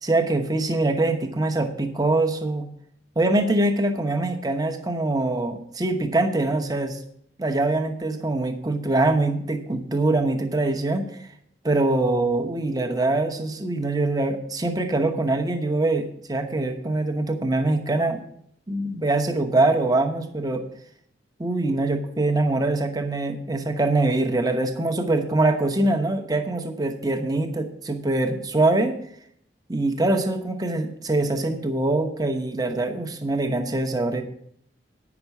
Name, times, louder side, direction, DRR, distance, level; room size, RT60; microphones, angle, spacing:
voice 1, 0.0-2.7 3.2-7.0 7.4-11.3 11.6-18.2 18.7-20.6 21.4-28.9 29.7-34.2, right 2 dB, 20° right, 6 dB, 1.0 m, -23 dB
9.4 x 6.0 x 8.1 m, 0.68 s
head